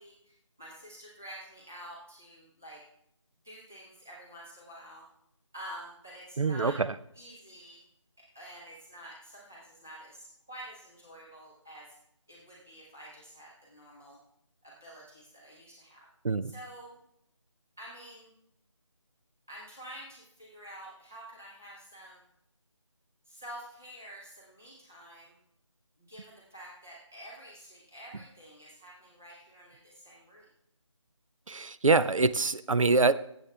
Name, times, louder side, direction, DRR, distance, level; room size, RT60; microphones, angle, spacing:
voice 1, 0.0-2.8 3.4-5.1 5.5-6.8 7.1-7.8 8.3-11.9 12.3-14.2 14.6-16.1 16.4-17.0 17.8-18.3 19.5-22.2 23.3-25.3 26.0-30.5, right 1 dB, 5° right, -7 dB, 0.4 m, -48 dB
voice 2, 6.4-6.9 16.2-16.5 31.5-33.1, right 3 dB, 90° right, 15 dB, 0.5 m, -25 dB
14.0 x 7.3 x 3.3 m, 0.75 s
figure-of-eight pair, 165°, 16 cm